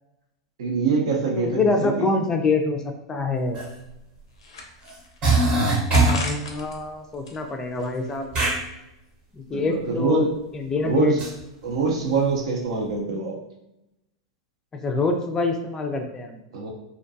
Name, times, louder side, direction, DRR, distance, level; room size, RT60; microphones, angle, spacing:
voice 1, 0.6-2.1 9.5-10.3 10.8-11.2 11.6-13.4 16.5-16.7, right 4 dB, 75° right, 1 dB, 0.6 m, -24 dB
voice 2, 1.4-3.6 6.0-8.3 9.3-10.3 10.5-11.1 14.8-16.4, left 3 dB, 20° left, 4 dB, 0.3 m, -25 dB
sound 1, 3.2-3.3 3.8-5.2 5.9-6.8 7.1-8.3, left 3 dB, 85° left, 0.5 m, -36 dB
sound 2, 3.5-3.7 4.9-5.0 5.2-6.3 8.3-8.6 11.2-11.3, right 2 dB, 40° right, 0.8 m, -20 dB
2.5 x 2.2 x 2.5 m, 0.90 s
hypercardioid pair, 110°, 3 cm